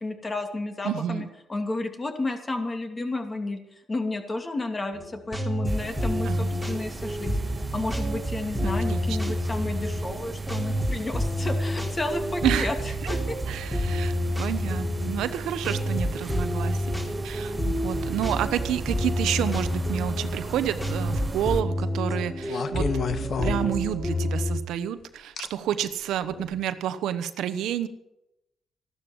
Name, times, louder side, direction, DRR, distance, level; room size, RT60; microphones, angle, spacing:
voice 1, 0.0-7.4 7.7-12.7 13.1-13.4, left 2 dB, 25° left, 5 dB, 2.6 m, -32 dB
voice 2, 0.8-1.3 6.2-6.6 8.6-9.3 12.4-12.7 13.0-13.1 13.5-16.9 17.2-22.9 23.2-27.9, right 10 dB, 80° right, 12 dB, 1.0 m, -30 dB
sound 1, 4.9-24.6, equal, 5° left, 3.3 m, -29 dB
sound 2, 5.7-21.6, right 3 dB, 25° right, 1.0 m, -37 dB
sound 3, 20.7-21.1 22.5-24.2 25.4-25.5 26.3-26.5, left 6 dB, 55° left, 1.4 m, -31 dB
14.5 x 12.0 x 7.2 m, 0.87 s
cardioid pair, 90°, 0 cm